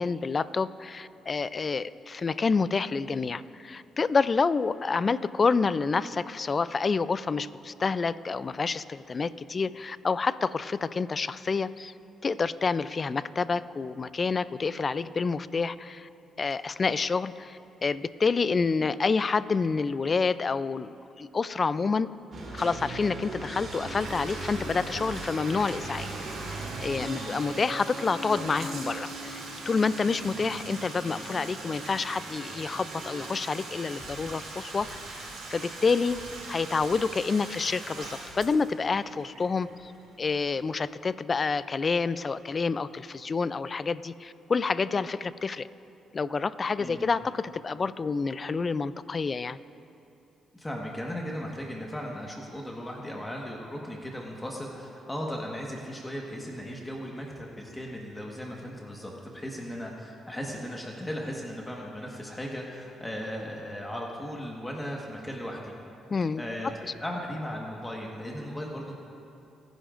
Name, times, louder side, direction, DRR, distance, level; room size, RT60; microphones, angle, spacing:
voice 1, 0.0-11.9 12.2-16.1 16.4-22.1 22.5-26.1 26.4-36.2 36.5-39.9 40.2-45.7 46.1-49.6 66.1-66.7, left 4 dB, 35° left, 16 dB, 0.4 m, -28 dB
sound 1, 22.3-33.6, right 2 dB, 50° right, 3.3 m, -40 dB
Bathtub (filling or washing), 23.6-40.3, right 3 dB, 85° right, 3.7 m, -42 dB
voice 2, 27.0-27.4 46.8-47.2 50.5-65.7 66.4-68.9, equal, 15° left, -1 dB, 1.4 m, -37 dB
sound 2, 34.0-34.4 34.6-35.8 36.1-37.5 38.0-39.3, left 2 dB, 50° left, 3.2 m, -51 dB
28.0 x 10.5 x 2.5 m, 2.7 s
cardioid pair, 90°, 0 cm